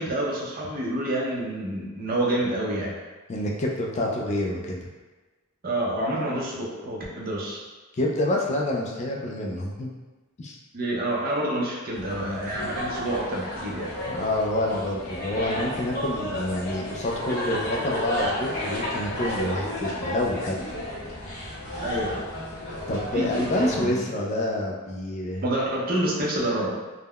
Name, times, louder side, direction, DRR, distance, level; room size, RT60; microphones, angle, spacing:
voice 1, 0.0-2.9 5.6-7.6 10.7-13.9 21.8-22.2 23.1-23.9 25.4-26.7, right 1 dB, 45° right, -4 dB, 0.6 m, -28 dB
voice 2, 3.3-4.9 7.9-9.9 10.4-10.6 12.5-12.6 14.1-20.6 22.9-25.4, left 1 dB, 35° left, -1 dB, 0.3 m, -27 dB
sound 1, 11.9-23.8, left 1 dB, 50° left, 0.8 m, -32 dB
3.5 x 2.1 x 2.2 m, 1.2 s
head